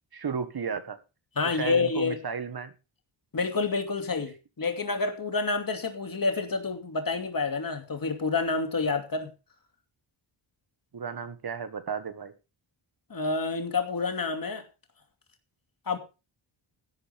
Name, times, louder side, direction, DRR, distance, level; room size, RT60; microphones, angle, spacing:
voice 1, 0.1-1.0 1.4-2.7 10.9-12.3, right 6 dB, 50° right, 11 dB, 1.6 m, -34 dB
voice 2, 1.4-2.2 3.3-9.3 13.1-14.6 15.9-16.0, left 4 dB, 45° left, 6 dB, 2.6 m, -28 dB
13.5 x 11.5 x 3.5 m, 0.29 s
wide cardioid pair, 115°, 48 cm